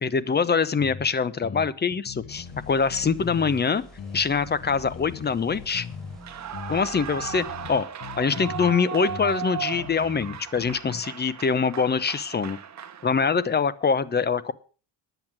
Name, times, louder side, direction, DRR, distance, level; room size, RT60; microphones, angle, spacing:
voice 1, 0.0-3.8 4.1-5.9 6.7-7.9 8.2-12.6 13.0-14.5, left 5 dB, 25° left, 15 dB, 0.8 m, -24 dB
sound 1, 0.8-1.1 1.4-3.6 4.0-6.2 6.5-8.7 9.1-11.0, left 7 dB, 50° left, 1.2 m, -39 dB
sound 2, 2.3-7.8, equal, ahead, 4.7 m, -47 dB
Clapping / Cheering / Applause, 6.1-13.5, right 9 dB, 40° right, 1.2 m, -37 dB
10.5 x 8.1 x 7.3 m, 0.38 s
cardioid pair, 125°, 42 cm